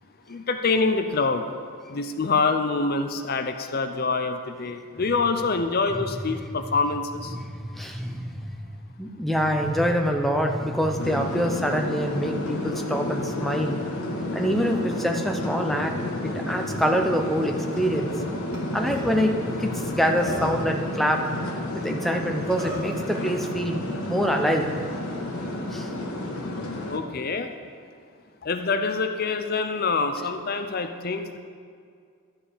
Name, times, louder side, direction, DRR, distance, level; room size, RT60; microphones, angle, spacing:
voice 1, 0.3-1.4 1.9-7.4 26.9-27.5 28.4-31.4, left 4 dB, 45° left, 7 dB, 0.5 m, -26 dB
voice 2, 7.3-8.6 9.0-13.7 14.3-15.9 16.2-18.1 18.7-21.2 21.7-24.7 25.7-25.9, equal, ahead, 2 dB, 0.7 m, -25 dB
sound 1, 11.0-27.0, left 1 dB, 80° left, 1.4 m, -31 dB
Burping eructation, 18.5-18.6 18.9-19.1 19.8-19.9 20.2-20.7 22.1-22.2 22.6-22.9, equal, 45° right, 1.8 m, -33 dB
12.5 x 7.6 x 5.0 m, 2.2 s
head